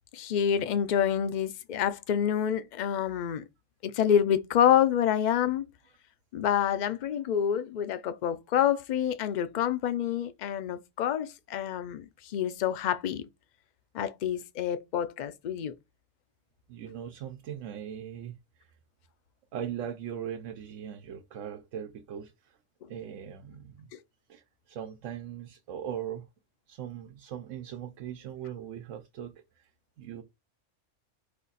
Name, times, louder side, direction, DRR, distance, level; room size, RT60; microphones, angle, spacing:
voice 1, 0.1-3.4 3.8-5.7 6.3-12.0 12.3-13.2 13.9-15.7, left 9 dB, 60° left, 0.4 m, -27 dB
voice 2, 16.7-18.7 19.5-22.6 22.9-23.9 24.3-26.2 26.7-29.7 30.0-30.2, right 9 dB, 85° right, 1.0 m, -40 dB
5.1 x 2.4 x 3.9 m
omnidirectional pair, 1.3 m